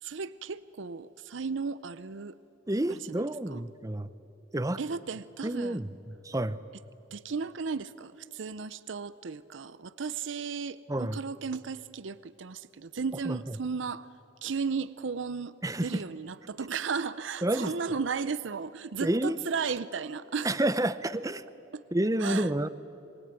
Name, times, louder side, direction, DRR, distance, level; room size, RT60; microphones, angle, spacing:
voice 1, 0.0-2.4 2.9-3.6 4.8-5.8 7.1-14.1 14.4-15.5 15.8-20.6 21.7-21.8 22.2-22.5, right 5 dB, 70° right, 16 dB, 0.6 m, -35 dB
voice 2, 2.7-4.1 4.5-4.8 5.4-5.9 6.2-6.6 10.9-11.2 13.3-13.4 15.6-16.0 17.4-17.7 19.0-19.4 20.4-21.4 21.9-22.7, right 1 dB, 15° right, 14 dB, 0.7 m, -29 dB
26.0 x 22.5 x 9.5 m, 2.9 s
head